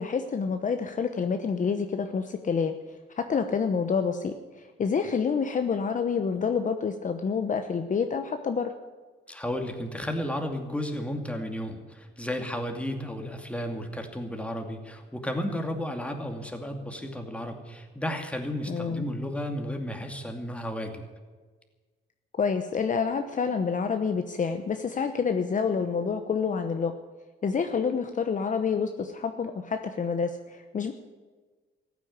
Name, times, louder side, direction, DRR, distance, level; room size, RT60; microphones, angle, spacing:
voice 1, 0.0-2.7 3.2-8.7 18.7-19.0 22.4-26.9 27.4-30.9, left 5 dB, 40° left, 7 dB, 1.0 m, -28 dB
voice 2, 9.3-21.0, equal, 5° left, 4 dB, 2.5 m, -33 dB
15.0 x 9.4 x 9.6 m, 1.4 s
cardioid pair, 90°, 20 cm